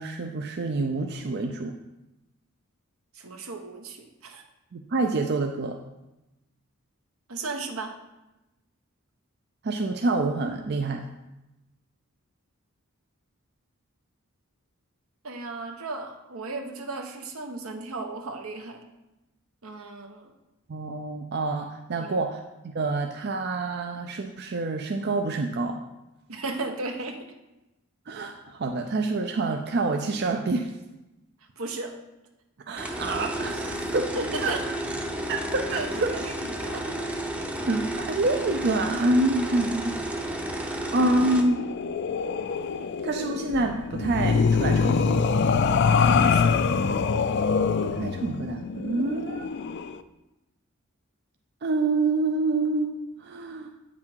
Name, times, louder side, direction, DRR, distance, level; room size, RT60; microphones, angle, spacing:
voice 1, 0.0-1.7 4.7-5.8 9.6-11.0 20.7-22.4 22.7-25.8 28.1-30.7 32.7-34.5 35.3-36.1 37.7-40.0 40.6-41.6 43.0-45.3 47.7-49.5 51.6-53.7, right 2 dB, 50° right, 4 dB, 0.5 m, -27 dB
voice 2, 3.1-4.4 7.3-8.0 15.2-18.8 19.6-20.3 22.0-22.2 26.3-27.3 31.6-31.9 34.1-34.6 35.7-36.9 39.4-39.6 46.2-46.6, right 3 dB, 80° right, 5 dB, 1.1 m, -35 dB
sound 1, 32.8-41.4, right 1 dB, 5° right, 0.6 m, -32 dB
sound 2, 41.0-50.0, left 5 dB, 55° left, 0.4 m, -24 dB
8.7 x 6.0 x 4.5 m, 0.99 s
head